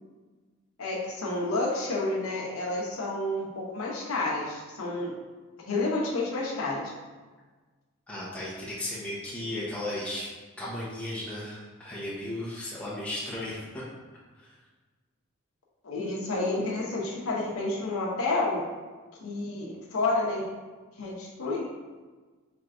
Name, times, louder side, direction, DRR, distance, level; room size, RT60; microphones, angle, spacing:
voice 1, 0.8-5.1 5.7-6.8 15.8-18.7 19.2-20.4 21.0-21.6, left 2 dB, 75° left, -3 dB, 0.9 m, -30 dB
voice 2, 8.1-10.3 10.6-13.8 14.4-14.6, left 1 dB, 5° left, -8 dB, 0.9 m, -35 dB
4.5 x 3.3 x 2.6 m, 1.4 s
head